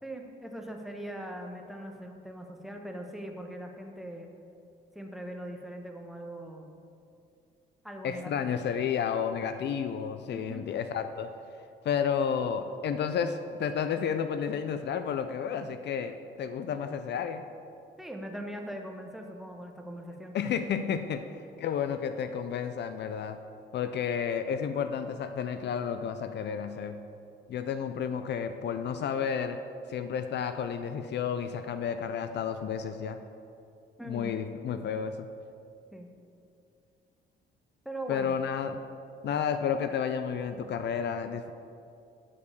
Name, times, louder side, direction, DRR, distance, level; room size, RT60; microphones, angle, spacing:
voice 1, 0.0-4.3 4.9-6.7 7.8-8.6 10.3-10.7 18.0-20.4 34.0-34.4 35.9-36.1 37.8-38.4, right 1 dB, ahead, 2 dB, 1.0 m, -41 dB
voice 2, 8.0-11.3 11.8-17.4 20.3-21.2 21.6-23.4 23.7-27.0 27.5-29.6 29.9-33.2 34.1-35.3 38.1-38.8 39.2-41.5, left 7 dB, 60° left, 9 dB, 0.4 m, -31 dB
7.1 x 4.8 x 6.8 m, 2.5 s
cardioid pair, 90°, 20 cm